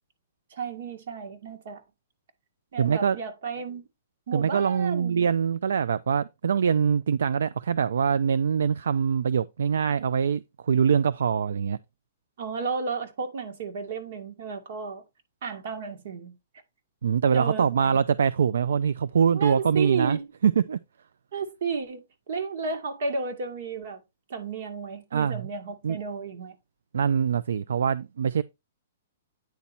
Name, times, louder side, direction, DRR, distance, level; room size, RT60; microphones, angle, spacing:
voice 1, 0.5-1.8 2.7-3.8 4.3-5.3 12.4-15.0 15.4-16.4 17.3-17.9 19.3-20.3 21.3-24.0 24.3-26.6, right 5 dB, 65° right, 2.0 m, -33 dB
voice 2, 2.8-3.2 4.3-11.8 17.0-20.8 25.1-25.4 25.8-26.0 26.9-28.4, right 7 dB, 85° right, 0.3 m, -24 dB
9.2 x 4.2 x 4.2 m
hypercardioid pair, 150°, 0 cm